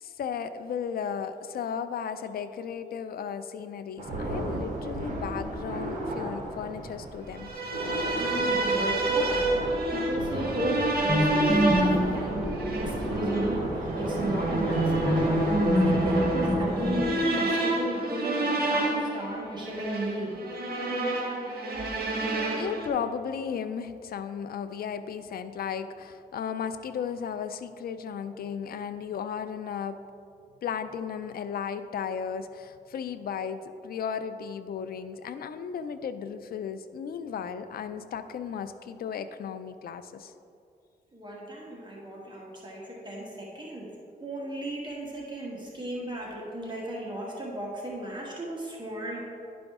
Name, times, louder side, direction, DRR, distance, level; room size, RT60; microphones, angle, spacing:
voice 1, 0.0-7.5 22.5-30.0 30.6-40.3, left 7 dB, 70° left, 10 dB, 0.4 m, -35 dB
sound 1, 4.0-17.0, right 1 dB, 50° right, 1.8 m, -34 dB
sound 2, 7.4-22.9, right 2 dB, 70° right, 1.3 m, -28 dB
voice 2, 8.2-9.4 9.9-20.3 41.1-43.9 44.2-49.2, right 1 dB, 30° right, -4 dB, 1.5 m, -34 dB
sound 3, 11.1-13.6 15.0-17.5, left 1 dB, 5° right, 1.0 m, -27 dB
11.0 x 5.1 x 3.6 m, 2.5 s
cardioid pair, 80°, 16 cm